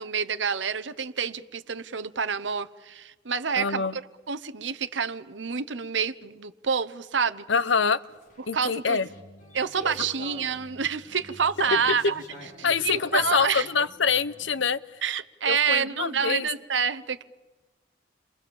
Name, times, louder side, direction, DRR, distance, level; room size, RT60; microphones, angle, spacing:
voice 1, 0.0-4.0 4.3-7.4 8.4-9.0 9.5-12.1 12.8-13.7 15.0-17.2, right 6 dB, 70° right, 12 dB, 1.0 m, -28 dB
voice 2, 3.6-4.0 7.5-8.0 8.5-9.1 12.6-14.8 15.5-16.5, left 5 dB, 75° left, 15 dB, 0.9 m, -25 dB
sound 1, 7.9-14.7, left 1 dB, 45° left, 5.3 m, -45 dB
29.5 x 23.5 x 7.1 m, 1.2 s
head